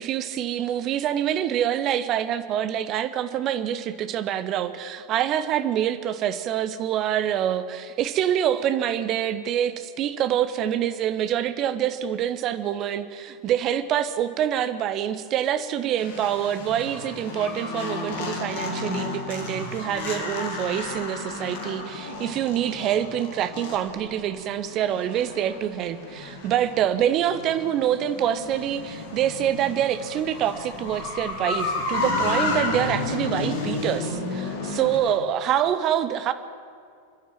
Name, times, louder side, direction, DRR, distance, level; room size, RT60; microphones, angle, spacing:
voice 1, 0.0-36.3, right 10 dB, 35° right, 11 dB, 1.3 m, -26 dB
sound 1, 16.0-35.2, left 3 dB, 50° left, 3.2 m, -32 dB
27.0 x 11.0 x 9.0 m, 2.3 s
figure-of-eight pair, 90°, 0 cm